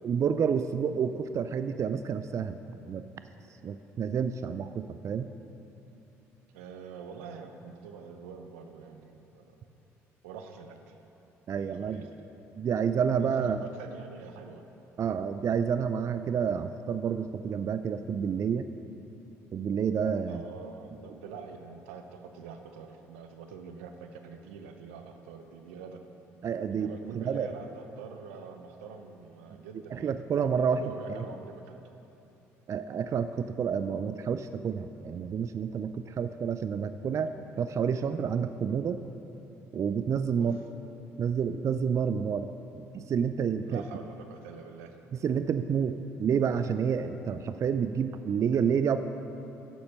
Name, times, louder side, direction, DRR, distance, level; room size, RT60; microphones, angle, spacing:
voice 1, 0.0-3.0 3.6-5.3 11.5-12.1 12.6-13.6 15.0-18.7 19.5-20.4 21.1-21.2 26.4-27.5 29.9-30.8 31.2-31.3 32.7-37.3 37.6-39.0 39.7-40.6 41.2-42.5 42.8-43.8 45.2-49.0, right 7 dB, 45° right, 10 dB, 0.4 m, -29 dB
voice 2, 6.5-9.5 10.2-10.9 11.6-12.3 13.2-14.6 20.3-26.0 26.7-30.2 30.7-31.8 40.3-40.6 43.7-45.0, right 5 dB, 85° right, 6 dB, 0.7 m, -45 dB
10.0 x 7.0 x 5.5 m, 2.9 s
hypercardioid pair, 55°, 7 cm